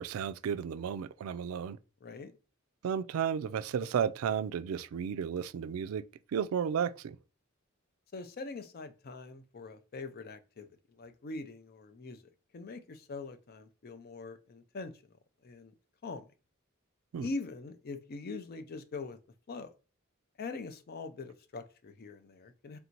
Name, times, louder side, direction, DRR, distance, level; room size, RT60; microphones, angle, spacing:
voice 1, 0.0-1.8 2.8-6.0 6.3-7.2 17.1-17.3, right 7 dB, 85° right, 0.3 m, -33 dB
voice 2, 2.0-2.4 8.1-12.2 12.5-15.0 15.4-15.7 16.0-16.2 17.2-19.2 19.5-19.7 20.4-22.8, left 3 dB, 45° left, 0.5 m, -43 dB
3.5 x 2.6 x 4.3 m
head